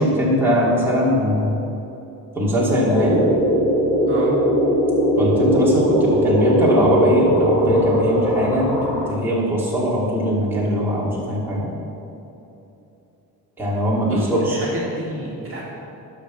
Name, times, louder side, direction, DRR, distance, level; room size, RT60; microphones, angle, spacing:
voice 1, 0.0-1.6 2.3-3.2 5.2-11.7 13.6-14.7, equal, 5° right, -7 dB, 2.5 m, -20 dB
sound 1, 2.9-9.1, equal, 20° left, 2.7 m, -19 dB
voice 2, 4.1-4.4 14.0-15.6, right 1 dB, 35° right, -5 dB, 2.3 m, -31 dB
12.0 x 5.9 x 6.9 m, 2.9 s
cardioid pair, 145°, 38 cm